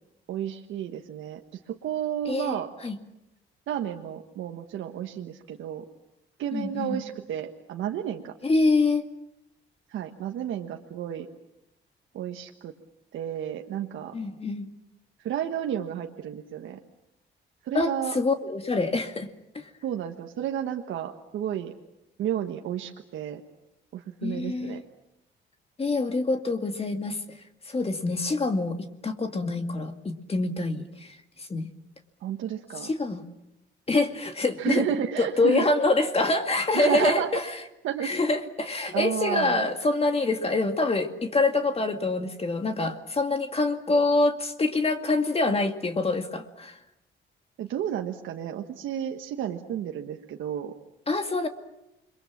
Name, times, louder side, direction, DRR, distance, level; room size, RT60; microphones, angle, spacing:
voice 1, 0.3-2.7 3.7-5.8 6.4-8.3 9.9-11.3 12.1-12.7 13.1-14.1 15.2-16.8 17.6-18.2 19.8-21.7 22.2-23.4 23.9-24.8 32.2-32.9 34.6-35.8 36.7-37.4 37.8-38.1 38.9-39.7 47.6-50.7, right 10 dB, 80° right, 3 dB, 1.4 m, -31 dB
voice 2, 2.3-2.9 6.5-7.0 8.4-9.0 14.1-14.7 17.7-19.3 19.5-19.7 24.2-24.8 25.8-27.2 27.7-28.8 29.0-31.7 32.8-33.2 33.9-34.8 35.2-37.4 38.0-46.8 51.1-51.5, left 2 dB, 30° left, 6 dB, 2.2 m, -26 dB
29.0 x 23.0 x 7.4 m, 0.90 s
cardioid pair, 90°, 20 cm